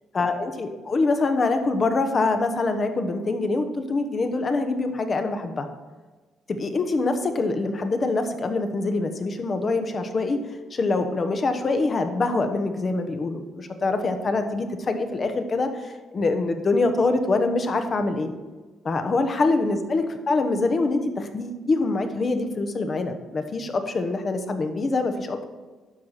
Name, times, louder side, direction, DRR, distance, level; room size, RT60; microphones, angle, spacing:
voice 1, 0.1-5.7 6.5-10.4 10.7-18.3 18.8-25.4, left 3 dB, 40° left, 7 dB, 1.1 m, -24 dB
11.5 x 4.7 x 5.8 m, 1.3 s
cardioid pair, 90°, 0 cm